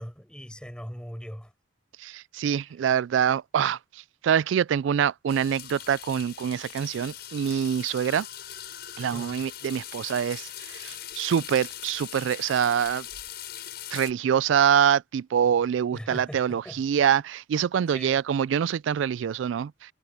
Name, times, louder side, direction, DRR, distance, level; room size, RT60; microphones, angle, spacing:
voice 1, 0.0-1.5 9.1-9.4 15.9-16.8 17.9-18.2, equal, 5° left, 5.3 m, -40 dB
voice 2, 2.0-3.8 4.2-8.3 9.0-13.0 13.9-19.7, right 8 dB, 80° right, 0.3 m, -25 dB
sound 1, 5.3-14.1, left 11 dB, 55° left, 8.0 m, -41 dB
head